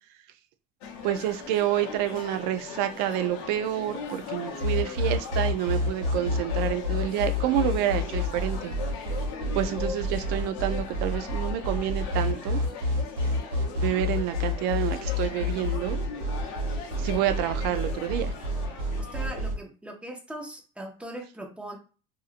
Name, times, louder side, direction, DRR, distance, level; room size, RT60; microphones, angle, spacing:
sound 1, 0.8-19.5, left 5 dB, 70° left, 0.7 m, -39 dB
voice 1, 1.0-8.7 9.5-12.6 13.8-16.0 17.0-18.3, right 12 dB, 65° right, 9 dB, 0.4 m, -28 dB
sound 2, 4.6-19.5, left 2 dB, 85° right, 1.4 m, -28 dB
voice 2, 19.0-21.8, right 1 dB, 5° right, 2 dB, 0.5 m, -40 dB
2.8 x 2.5 x 2.4 m, 0.36 s
cardioid pair, 140°, 18 cm